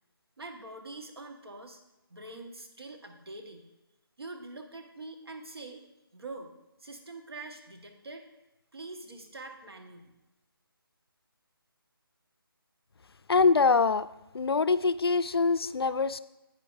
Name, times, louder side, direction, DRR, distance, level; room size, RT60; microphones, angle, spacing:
voice 1, 0.4-1.8 2.1-3.7 4.2-5.9 6.1-6.5 6.8-8.3 8.7-10.1, right 2 dB, 85° right, 4 dB, 1.4 m, -44 dB
voice 2, 13.3-14.1 14.3-16.2, left 4 dB, 85° left, 15 dB, 0.4 m, -24 dB
10.5 x 8.8 x 2.7 m, 0.98 s
figure-of-eight pair, 160°, 13 cm